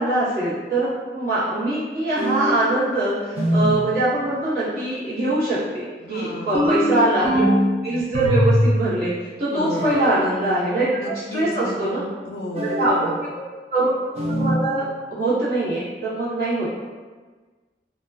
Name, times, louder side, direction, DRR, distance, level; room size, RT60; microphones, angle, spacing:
voice 1, 0.0-7.5 7.8-9.1 9.4-12.1 12.6-13.4 13.7-16.8, right 2 dB, 55° right, -12 dB, 1.0 m, -23 dB
sound 1, 2.2-2.7 3.4-3.9 6.5-7.7 8.1-8.8 9.7-10.2 12.5-13.1 14.2-14.7, equal, 35° right, 0.4 m, -21 dB
voice 2, 6.0-6.7 9.5-9.9 11.0-13.1, left 1 dB, 65° left, 1 dB, 0.4 m, -33 dB
2.3 x 2.2 x 3.3 m, 1.4 s
head